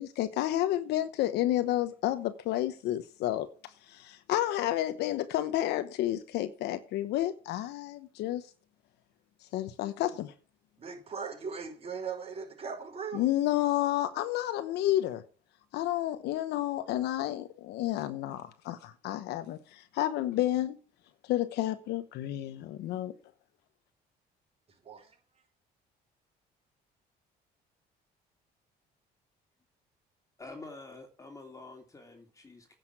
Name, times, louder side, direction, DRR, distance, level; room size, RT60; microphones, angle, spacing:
voice 1, 0.0-8.5 9.5-10.3 13.1-15.3 15.7-20.8 21.2-23.2, left 14 dB, 80° left, 1.0 m, -31 dB
voice 2, 10.8-13.2 24.8-25.2, right 6 dB, 35° right, 5.8 m, -39 dB
voice 3, 30.4-32.8, left 3 dB, 20° left, 2.8 m, -47 dB
10.0 x 6.7 x 7.9 m
cardioid pair, 110°, 17 cm